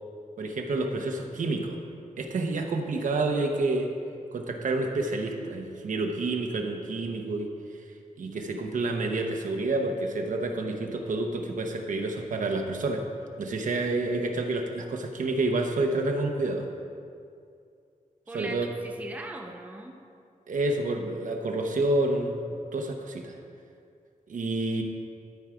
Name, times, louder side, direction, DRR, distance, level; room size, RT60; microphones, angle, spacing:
voice 1, 0.4-1.8 2.2-3.9 4.3-7.5 8.2-13.0 13.4-16.6 18.3-18.7 20.5-22.3 22.7-23.4 24.3-24.8, right 2 dB, 70° right, 3 dB, 0.8 m, -28 dB
voice 2, 18.3-20.0, right 2 dB, 10° right, 2 dB, 0.6 m, -40 dB
13.0 x 4.6 x 4.9 m, 2.4 s
wide cardioid pair, 175°, 14 cm